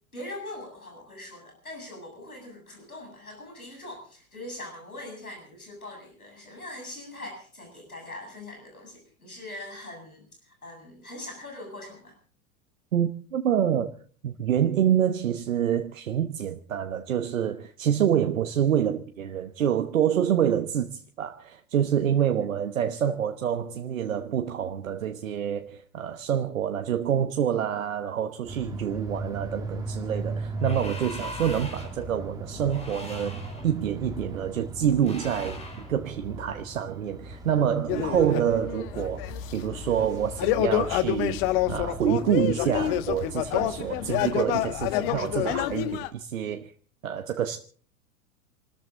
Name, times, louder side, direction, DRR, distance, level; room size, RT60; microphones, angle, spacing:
voice 1, 0.1-12.2 22.2-22.4, left 1 dB, 85° left, 7.9 m, -42 dB
voice 2, 12.9-13.9 14.2-35.6 35.9-46.7 47.0-47.6, right 9 dB, 65° right, 1.2 m, -27 dB
sound 1, 28.4-44.3, right 2 dB, 10° right, 3.1 m, -38 dB
sound 2, 30.6-32.0 32.6-33.7 35.0-35.9, left 1 dB, 15° left, 4.1 m, -40 dB
sound 3, 37.9-46.1, left 13 dB, 40° left, 1.3 m, -28 dB
27.5 x 13.5 x 3.8 m
figure-of-eight pair, 95°, 42 cm